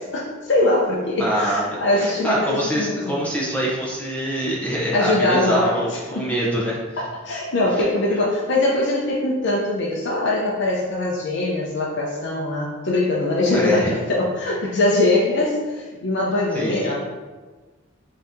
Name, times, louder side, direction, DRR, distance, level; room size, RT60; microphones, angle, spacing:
voice 1, 0.0-3.2 4.9-5.7 6.1-6.3 7.0-17.0, left 2 dB, 65° left, -4 dB, 0.6 m, -22 dB
voice 2, 1.2-7.0 7.7-7.9 8.1-8.2 13.5-13.9 16.5-16.9, equal, 10° left, -5 dB, 0.6 m, -25 dB
3.8 x 2.8 x 3.5 m, 1.3 s
head